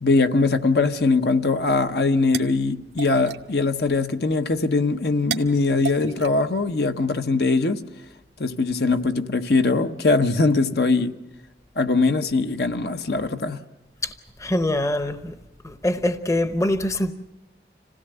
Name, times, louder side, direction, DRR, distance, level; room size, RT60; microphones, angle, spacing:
voice 1, 0.0-7.8 8.4-11.2 11.8-13.6, left 3 dB, 65° left, 0.9 m, -21 dB
sound 1, 1.9-7.2, right 6 dB, 90° right, 1.4 m, -38 dB
voice 2, 14.4-15.3 15.6-17.1, left 1 dB, 15° left, 0.8 m, -24 dB
26.5 x 17.0 x 7.9 m
head